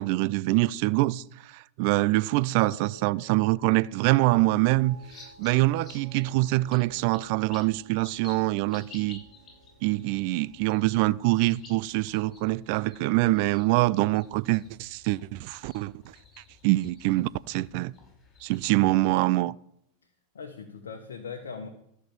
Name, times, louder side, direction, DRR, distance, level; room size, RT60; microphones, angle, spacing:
voice 1, 0.0-5.0 5.4-9.2 9.8-15.9 16.6-17.9 18.4-19.5, right 19 dB, 55° right, 0.3 m, -24 dB
sound 1, 2.7-13.1 13.4-13.9, right 2 dB, 80° right, 3.3 m, -55 dB
sound 2, 4.8-19.1, left 3 dB, 25° left, 5.8 m, -53 dB
voice 2, 20.3-21.7, left 5 dB, 75° left, 1.2 m, -39 dB
13.0 x 6.1 x 7.0 m
hypercardioid pair, 90°, 0 cm